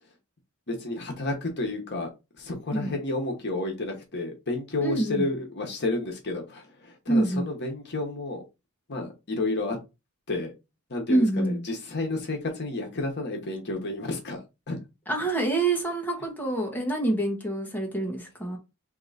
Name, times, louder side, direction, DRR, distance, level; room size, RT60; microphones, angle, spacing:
voice 1, 0.7-2.1 2.4-8.4 8.9-9.8 10.3-10.5 10.9-14.8, left 2 dB, 50° left, 1.1 m, -31 dB
voice 2, 4.8-5.3 7.1-7.5 11.1-11.6 15.1-18.6, right 2 dB, 10° left, 1.3 m, -26 dB
3.7 x 2.9 x 4.0 m
head